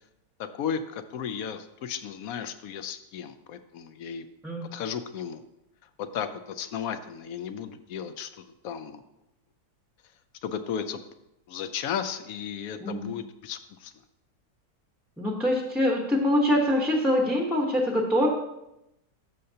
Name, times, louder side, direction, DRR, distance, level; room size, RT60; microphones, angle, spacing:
voice 1, 0.4-4.3 4.7-5.4 6.0-9.0 10.4-11.0 11.5-13.9, left 7 dB, 70° left, 11 dB, 1.0 m, -34 dB
voice 2, 15.2-18.3, left 1 dB, ahead, -1 dB, 0.7 m, -24 dB
12.0 x 6.5 x 2.8 m, 0.88 s
omnidirectional pair, 1.6 m